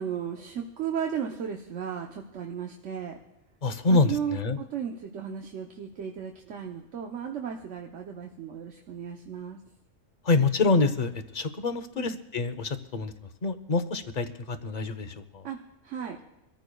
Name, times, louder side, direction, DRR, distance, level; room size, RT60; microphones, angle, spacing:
voice 1, 0.0-3.2 3.9-9.6 12.0-12.2 15.4-15.6 15.8-16.2, right 8 dB, 80° right, 2 dB, 1.2 m, -35 dB
voice 2, 3.6-4.6 10.3-13.1 13.4-15.4, left 3 dB, 40° left, 11 dB, 0.8 m, -26 dB
25.0 x 14.5 x 2.3 m, 0.91 s
omnidirectional pair, 1.3 m